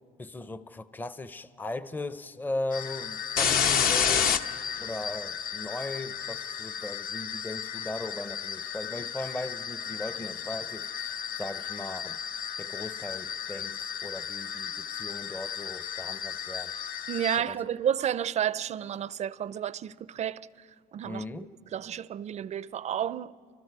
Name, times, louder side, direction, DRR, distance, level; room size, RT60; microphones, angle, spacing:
voice 1, 0.2-4.5 4.8-12.2 12.6-16.7 17.4-17.6 21.0-21.5, left 2 dB, 10° left, 0.6 m, -38 dB
sound 1, 2.7-17.4, left 7 dB, 60° left, 1.0 m, -32 dB
voice 2, 17.1-20.5 20.9-21.4 21.7-23.3, right 9 dB, 40° right, 0.4 m, -31 dB
30.0 x 25.0 x 4.7 m
cardioid pair, 110°, 17 cm